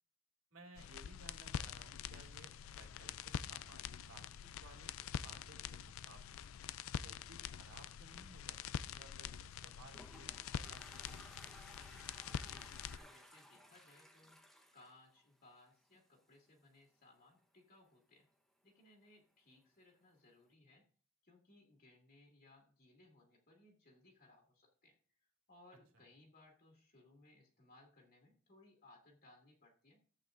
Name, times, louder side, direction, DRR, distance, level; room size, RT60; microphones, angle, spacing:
voice 1, 0.5-4.3 4.6-6.5 6.9-11.2, right 2 dB, 80° right, 2 dB, 2.4 m, -60 dB
sound 1, 0.8-13.0, left 8 dB, 80° left, 0.4 m, -46 dB
Toilet flush, 9.6-15.9, equal, ahead, 1.0 m, -59 dB
voice 2, 12.2-14.4 14.7-18.3 18.6-20.9 21.2-25.0 25.5-30.0, left 2 dB, 50° left, 0 dB, 2.2 m, -65 dB
14.0 x 8.1 x 2.5 m, 0.43 s
head